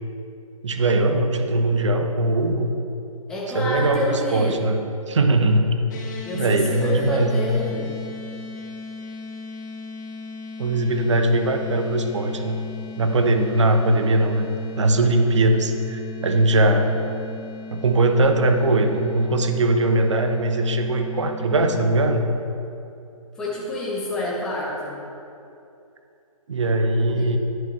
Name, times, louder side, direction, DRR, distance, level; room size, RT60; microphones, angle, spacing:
voice 1, 0.6-2.7 3.5-5.7 6.3-7.5 10.6-12.6 13.0-14.5 14.8-17.0 17.7-22.3 26.5-27.4, right 2 dB, 55° right, 5 dB, 1.0 m, -20 dB
voice 2, 3.3-4.6 6.2-8.0 23.3-25.0 27.2-27.3, left 1 dB, 5° left, -7 dB, 0.8 m, -28 dB
sound 1, 5.9-22.2, left 3 dB, 30° left, 1.4 m, -37 dB
11.0 x 8.2 x 3.3 m, 2.7 s
figure-of-eight pair, 150°, 18 cm